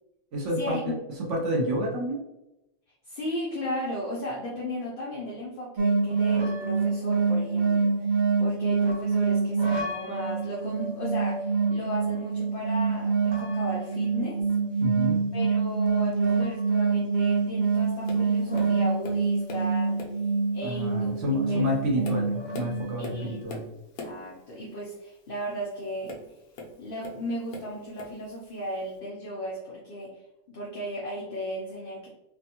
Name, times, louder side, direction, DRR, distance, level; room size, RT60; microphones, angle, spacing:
voice 1, 0.3-0.9 1.3-2.2 14.8-15.2 20.6-23.6, equal, 60° right, -2 dB, 1.0 m, -29 dB
voice 2, 3.0-14.4 15.3-20.0 20.5-21.1 21.5-21.6 21.9-22.0 23.0-23.4 24.0-26.1 26.8-30.1 30.5-32.1, equal, 55° left, -5 dB, 0.6 m, -35 dB
sound 1, 5.8-23.4, right 4 dB, 85° right, 0.4 m, -26 dB
Tap, 18.1-18.3 18.5-19.7 20.0-20.3 21.0-21.1 21.7-24.3 26.0-27.2 27.5-28.2 29.0-29.1, left 2 dB, 80° left, 1.1 m, -41 dB
3.3 x 2.2 x 2.8 m, 0.92 s
omnidirectional pair, 1.5 m